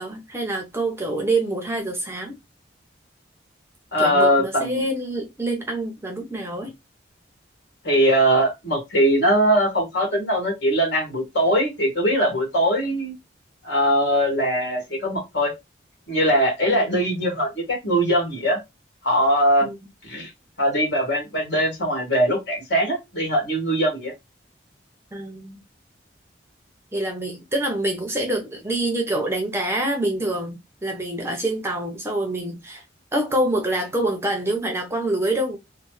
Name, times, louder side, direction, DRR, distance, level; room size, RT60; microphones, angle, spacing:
voice 1, 0.0-2.4 4.0-6.7 16.7-16.9 19.6-19.8 25.1-25.6 26.9-32.8 33.1-35.6, right 1 dB, 15° right, 0.6 m, -26 dB
voice 2, 3.9-4.8 7.8-13.1 13.6-15.5 16.1-18.6 19.0-19.7 20.0-20.3 20.6-24.1, equal, 65° left, 1.5 m, -21 dB
3.1 x 2.0 x 3.0 m
head